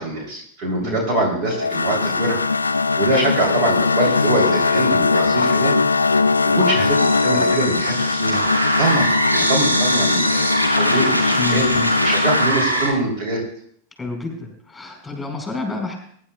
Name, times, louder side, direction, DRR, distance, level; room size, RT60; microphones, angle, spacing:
voice 1, 0.0-2.4 2.7-5.7 6.4-11.7 12.0-13.4, right 2 dB, 45° right, 0 dB, 3.3 m, -23 dB
sound 1, 1.4-12.5, left 4 dB, 80° left, 0.4 m, -20 dB
sound 2, 7.0-12.9, right 1 dB, 90° right, 2.3 m, -22 dB
voice 2, 11.3-12.0 14.0-15.9, left 3 dB, 5° left, 2 dB, 5.1 m, -29 dB
23.0 x 11.0 x 2.4 m, 0.65 s
figure-of-eight pair, 90°, 0 cm